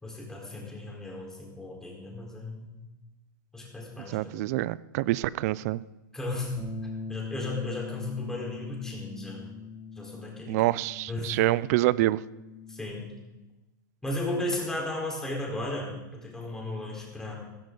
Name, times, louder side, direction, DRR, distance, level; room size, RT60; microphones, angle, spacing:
voice 1, 0.0-2.7 3.5-4.4 6.1-6.5 7.1-9.5 9.9-10.6 11.1-11.4 12.7-13.1 14.0-17.3, left 2 dB, 5° left, -3 dB, 4.3 m, -35 dB
voice 2, 4.1-5.8 10.5-12.2, right 17 dB, 50° right, 20 dB, 0.5 m, -26 dB
Bass guitar, 6.6-12.8, left 4 dB, 20° right, 5.0 m, -41 dB
15.5 x 15.5 x 4.0 m, 1.0 s
supercardioid pair, 145°, 11 cm